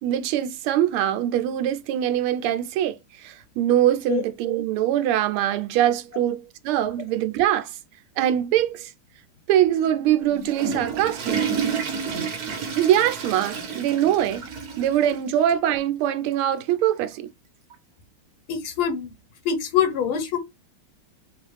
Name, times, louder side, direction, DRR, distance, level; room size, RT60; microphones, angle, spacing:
voice 1, 0.0-7.8 8.2-8.9 9.5-11.4 12.8-14.4 14.8-17.3, right 11 dB, 85° right, 1.5 m, -23 dB
Water / Toilet flush, 10.2-15.2 15.5-15.6 16.3-16.4 17.7-17.8, right 6 dB, 50° right, 1.3 m, -30 dB
voice 2, 18.5-19.1 19.4-20.4, left 8 dB, 80° left, 1.8 m, -24 dB
4.7 x 2.4 x 3.2 m
omnidirectional pair, 2.3 m